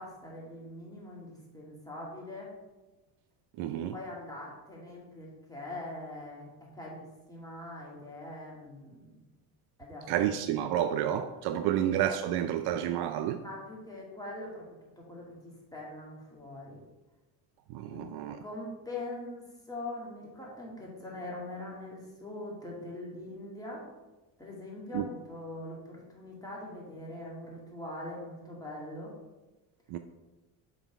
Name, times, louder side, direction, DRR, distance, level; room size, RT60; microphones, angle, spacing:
voice 1, 0.0-2.5 3.9-9.0 9.8-10.1 11.6-11.8 13.3-14.6 15.0-16.8 17.8-18.1 18.4-23.8 24.4-29.1, left 2 dB, 10° left, -4 dB, 2.2 m, -42 dB
voice 2, 3.6-4.0 10.1-13.4 17.7-18.4 24.9-25.1 29.9-30.0, right 10 dB, 60° right, 8 dB, 0.5 m, -30 dB
6.2 x 4.0 x 4.6 m, 1.1 s
supercardioid pair, 100°, 44 cm